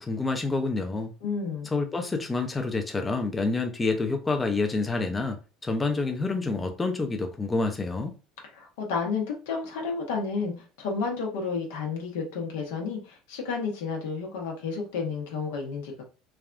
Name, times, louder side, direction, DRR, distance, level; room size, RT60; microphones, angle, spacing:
voice 1, 0.0-1.1 1.6-5.4 5.6-8.1, left 3 dB, 20° left, 0.5 m, -28 dB
voice 2, 1.2-1.7 8.5-16.1, left 5 dB, 85° left, 0.9 m, -31 dB
3.4 x 2.2 x 2.5 m
supercardioid pair, 90°, 0 cm